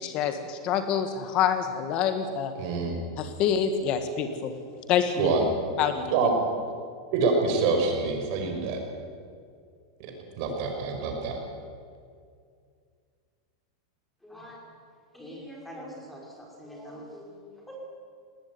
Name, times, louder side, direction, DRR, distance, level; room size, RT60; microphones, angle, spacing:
voice 1, 0.0-2.5 3.2-4.5 4.9-5.3 5.8-6.3, left 8 dB, 40° left, 8 dB, 1.8 m, -27 dB
voice 2, 2.6-3.0 5.2-5.5 6.1-6.4 7.1-8.8 10.0-10.1 10.4-11.4, right 4 dB, 55° right, 3 dB, 5.8 m, -26 dB
voice 3, 14.2-14.6 15.1-17.8, equal, 5° left, -2 dB, 5.8 m, -44 dB
19.0 x 18.5 x 9.7 m, 2.2 s
supercardioid pair, 140°, 2 cm